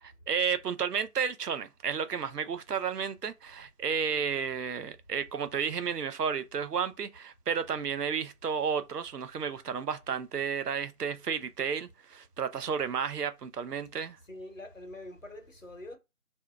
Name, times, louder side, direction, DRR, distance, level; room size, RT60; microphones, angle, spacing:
voice 1, 0.0-14.2, right 6 dB, 85° right, 0.6 m, -32 dB
voice 2, 4.1-4.4 14.2-16.0, left 1 dB, 55° left, 0.9 m, -45 dB
3.3 x 2.6 x 2.3 m
figure-of-eight pair, 175°, 46 cm